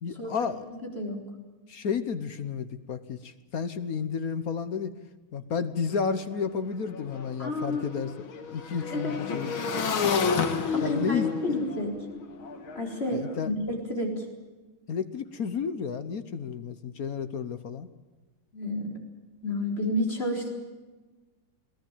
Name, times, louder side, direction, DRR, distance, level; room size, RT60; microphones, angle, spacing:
voice 1, 0.0-0.6 1.7-4.9 5.3-8.1 8.5-9.5 10.8-11.3 13.1-13.5 14.9-17.9, left 6 dB, 50° left, 11 dB, 1.3 m, -31 dB
voice 2, 0.8-1.2 7.4-7.8 8.9-9.2 10.3-11.9 12.7-14.3 18.5-19.0 19.4-20.5, left 1 dB, 30° left, 1 dB, 4.4 m, -31 dB
Motorcycle / Engine, 5.9-6.0 6.3-13.4, left 6 dB, 75° left, 2.5 m, -31 dB
22.0 x 17.0 x 9.0 m, 1.2 s
omnidirectional pair, 2.3 m